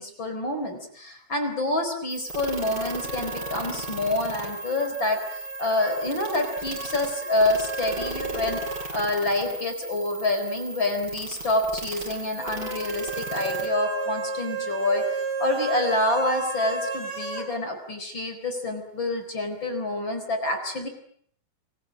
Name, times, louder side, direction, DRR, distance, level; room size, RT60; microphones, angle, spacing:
voice 1, 0.0-8.6 8.9-20.9, left 2 dB, 30° left, 6 dB, 4.7 m, -27 dB
sound 1, 2.1-13.7, right 1 dB, 25° right, 6.3 m, -36 dB
sound 2, 2.4-8.9 9.2-9.3 12.4-17.5, right 4 dB, 40° right, 5.3 m, -34 dB
29.0 x 22.5 x 7.7 m, 0.64 s
omnidirectional pair, 4.3 m